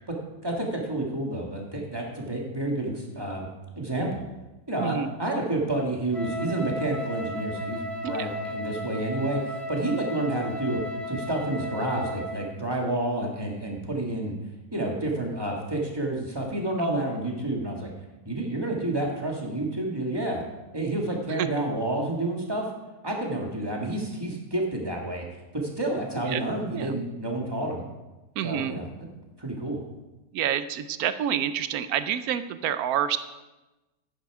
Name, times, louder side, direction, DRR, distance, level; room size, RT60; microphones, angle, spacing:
voice 1, 0.4-3.5 3.7-4.2 4.7-10.8 11.1-14.3 14.7-17.9 18.2-20.4 20.7-22.7 23.0-25.2 25.5-27.9 28.4-29.1 29.4-29.8, right 1 dB, 15° right, 0 dB, 1.8 m, -29 dB
voice 2, 4.8-5.1 8.0-8.3 16.8-17.0 21.3-21.5 26.3-26.4 26.7-26.9 28.4-28.7 30.3-33.2, right 9 dB, 70° right, 13 dB, 1.0 m, -28 dB
Wind instrument woodwind instrument, 6.1-12.5, left 1 dB, ahead, 0.8 m, -35 dB
10.5 x 9.1 x 4.8 m, 1.1 s
omnidirectional pair, 1.8 m